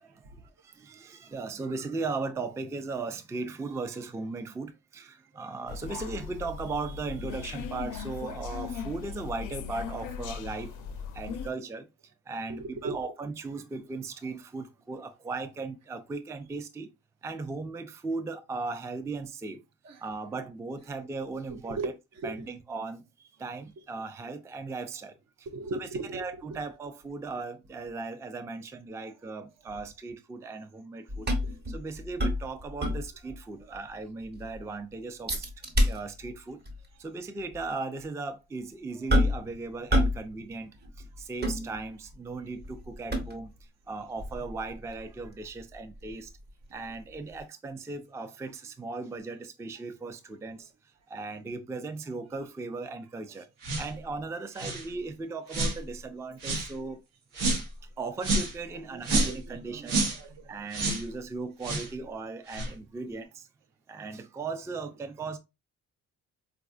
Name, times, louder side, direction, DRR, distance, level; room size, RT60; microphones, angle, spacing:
voice 1, 0.0-10.7 11.1-11.9 12.3-16.9 17.2-19.6 20.0-21.9 22.2-25.5 25.8-31.3 31.7-35.5 35.8-36.6 37.0-43.5 43.9-46.3 46.7-50.7 51.1-53.5 53.8-57.0 58.0-60.1 60.5-63.5 63.9-65.4, right 3 dB, 10° right, 0.3 m, -37 dB
sound 1, 5.7-11.5, left 6 dB, 90° left, 0.5 m, -38 dB
voice 2, 12.5-13.0 19.8-20.0 21.5-22.5 25.5-26.6 32.9-33.0 33.6-33.7 46.0-46.2 53.3-53.5 58.7-60.5, right 3 dB, 60° right, 0.7 m, -39 dB
sound 2, 31.1-33.4 33.7-33.8 34.2-34.6 35.3-36.4 36.7-36.9 37.5-37.6 39.1-39.5 39.9-40.3 40.5-42.1 42.6-43.6 44.2-47.0 47.4-47.5, equal, 35° right, 1.0 m, -29 dB
sound 3, 53.6-53.9 54.6-54.9 55.5-55.8 56.4-56.7 57.3-57.7 58.2-58.6 59.0-59.4 59.9-60.2 60.7-61.0 61.6-61.9 62.5-62.7, right 2 dB, 90° right, 1.0 m, -28 dB
4.1 x 2.4 x 2.3 m
cardioid pair, 90°, 30 cm